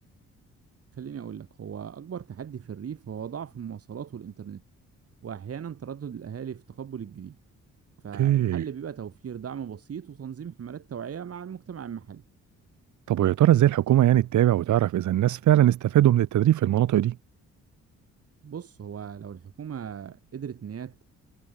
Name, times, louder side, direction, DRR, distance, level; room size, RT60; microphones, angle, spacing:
voice 1, 0.9-4.6 5.2-7.4 8.0-12.2 18.4-21.0, right 8 dB, 50° right, 4.5 m, -38 dB
voice 2, 8.1-8.6 13.1-17.2, right 12 dB, 75° right, 2.5 m, -21 dB
cardioid pair, 90°, 30 cm